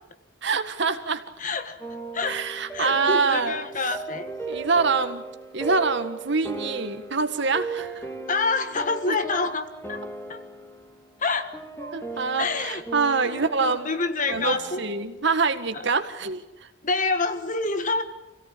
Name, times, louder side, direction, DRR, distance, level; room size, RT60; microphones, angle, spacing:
voice 1, 0.4-1.2 2.2-3.6 4.5-5.2 5.5-8.1 9.1-9.2 11.8-13.9 14.3-16.7, right 4 dB, 65° right, 8 dB, 1.8 m, -25 dB
voice 2, 1.4-1.8 2.1-2.4 2.7-4.3 8.3-10.0 10.3-10.4 11.2-11.6 12.4-12.8 13.2-14.8 15.7-15.8 16.8-18.0, left 3 dB, 40° left, 9 dB, 1.6 m, -27 dB
sound 1, 1.8-15.0, right 4 dB, 10° left, 2.7 m, -37 dB
26.5 x 17.0 x 8.7 m, 1.0 s
head